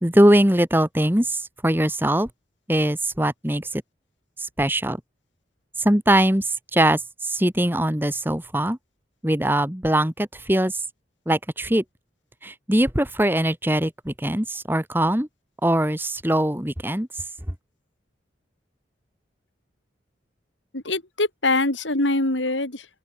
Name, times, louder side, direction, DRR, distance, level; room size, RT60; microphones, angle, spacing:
voice 1, 0.0-2.3 2.7-3.8 4.6-5.0 5.8-8.8 9.2-10.7 11.3-11.8 12.4-15.3 15.6-17.1, right 1 dB, 10° right, 1.7 m, -21 dB
voice 2, 20.7-22.9, left 2 dB, 80° left, 3.9 m, -23 dB
open air
head